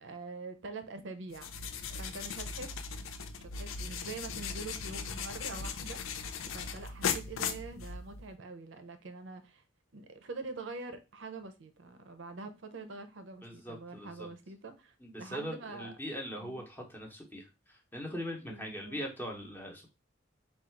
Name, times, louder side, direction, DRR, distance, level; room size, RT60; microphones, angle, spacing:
voice 1, 0.0-1.5 2.0-2.7 3.4-6.0 6.5-9.6 9.9-15.9 16.4-16.6 18.5-19.0, right 3 dB, 65° right, 0.5 m, -45 dB
sound 1, 1.3-8.3, left 5 dB, 85° left, 0.5 m, -38 dB
voice 2, 13.4-14.3 15.0-19.9, equal, 10° left, 0.8 m, -41 dB
3.7 x 2.3 x 4.5 m
head